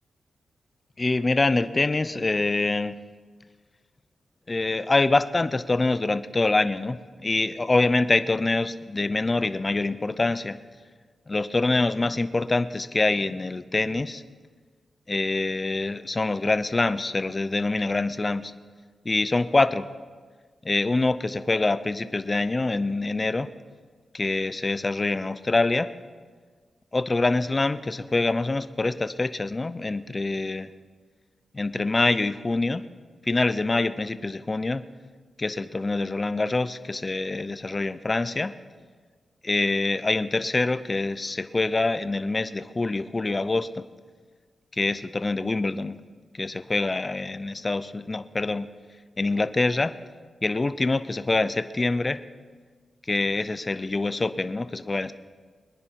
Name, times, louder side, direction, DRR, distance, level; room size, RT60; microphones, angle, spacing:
voice 1, 1.0-2.9 4.5-10.6 11.3-14.2 15.1-18.5 19.0-19.9 20.6-23.5 24.1-25.9 26.9-30.7 31.5-32.8 33.2-34.8 35.4-38.5 39.4-43.8 44.7-46.0 46.3-48.7 49.2-50.0 50.4-52.2 53.1-55.1, left 3 dB, 30° left, 13 dB, 0.7 m, -25 dB
22.0 x 10.5 x 4.6 m, 1.5 s
cardioid pair, 85°, 0 cm